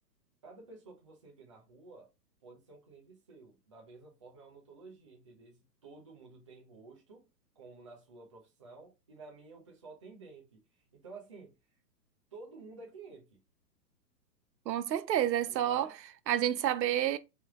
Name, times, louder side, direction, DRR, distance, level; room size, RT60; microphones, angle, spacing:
voice 1, 0.4-2.1 2.4-7.3 7.6-10.6 10.9-11.6 12.3-13.4 15.5-16.0, right 3 dB, 20° right, 0.4 m, -52 dB
voice 2, 14.7-15.9 16.3-17.2, right 11 dB, 90° right, 0.7 m, -29 dB
3.3 x 2.8 x 3.5 m
hypercardioid pair, 155°, 49 cm